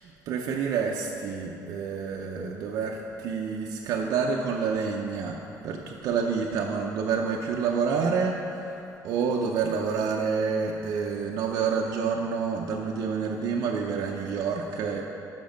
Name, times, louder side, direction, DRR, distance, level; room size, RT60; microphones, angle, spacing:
voice 1, 0.3-8.8 9.0-15.0, right 5 dB, 60° right, 0 dB, 0.5 m, -28 dB
6.9 x 5.8 x 5.2 m, 2.8 s
cardioid pair, 175°, 7 cm